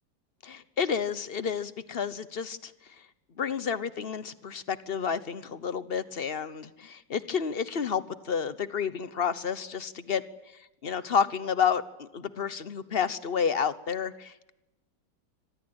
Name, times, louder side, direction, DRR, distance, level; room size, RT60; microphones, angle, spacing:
voice 1, 0.4-2.7 3.4-10.2 10.8-14.5, left 7 dB, 40° left, 15 dB, 1.0 m, -30 dB
25.5 x 19.5 x 8.8 m, 0.95 s
omnidirectional pair, 1.9 m